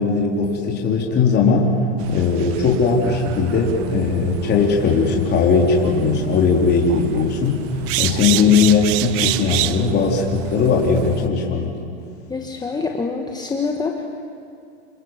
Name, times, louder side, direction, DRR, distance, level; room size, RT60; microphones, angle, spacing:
voice 1, 0.0-1.7 2.1-7.6 8.0-11.7, left 5 dB, 30° left, -1 dB, 3.6 m, -18 dB
sound 1, 2.0-11.3, right 16 dB, 40° right, 0.8 m, -29 dB
voice 2, 12.3-14.0, left 4 dB, 10° left, 2 dB, 1.4 m, -25 dB
27.5 x 25.0 x 7.3 m, 2.5 s
hypercardioid pair, 125°, 35 cm